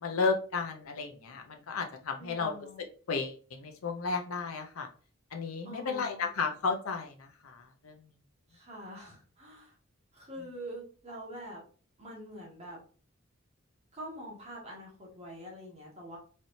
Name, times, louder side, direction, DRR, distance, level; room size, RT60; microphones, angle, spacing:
voice 1, 0.0-2.6 3.1-4.9 5.3-7.9, left 4 dB, 90° left, 4 dB, 0.6 m, -33 dB
voice 2, 2.2-2.8 5.6-6.3 8.5-9.7 10.1-11.6 12.0-12.8 13.9-16.2, equal, 30° right, -3 dB, 1.5 m, -45 dB
4.1 x 3.3 x 2.6 m, 0.40 s
head